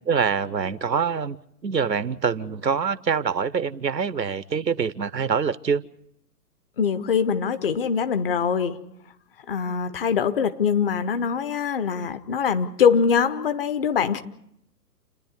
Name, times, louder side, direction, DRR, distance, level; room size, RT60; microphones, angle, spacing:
voice 1, 0.1-1.4 1.6-5.8, right 6 dB, 80° right, 18 dB, 0.9 m, -25 dB
voice 2, 6.8-8.8 9.5-14.2, left 6 dB, 35° left, 10 dB, 1.0 m, -23 dB
29.5 x 10.5 x 9.5 m, 0.77 s
figure-of-eight pair, 125°, 50 cm